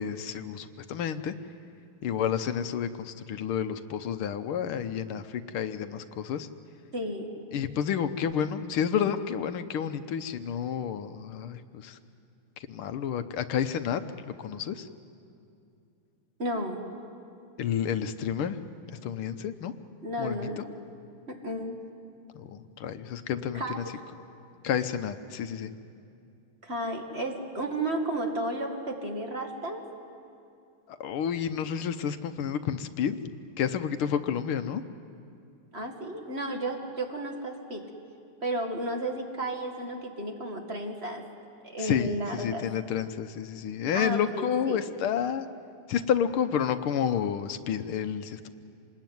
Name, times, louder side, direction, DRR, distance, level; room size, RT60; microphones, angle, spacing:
voice 1, 0.0-1.3 2.0-6.5 7.5-12.0 12.6-14.9 17.6-18.6 19.0-19.7 20.2-20.6 22.4-23.8 24.6-25.7 30.9-33.2 33.6-34.8 41.8-45.5 45.9-48.5, left 8 dB, 85° left, 11 dB, 1.8 m, -30 dB
voice 2, 6.9-7.4 16.4-16.9 20.0-20.6 21.3-21.8 23.5-23.8 26.6-29.8 35.7-37.9 38.4-41.2 41.6-42.7 43.9-44.8, right 1 dB, 30° right, 2 dB, 2.2 m, -33 dB
27.0 x 20.5 x 9.4 m, 2.5 s
omnidirectional pair, 2.3 m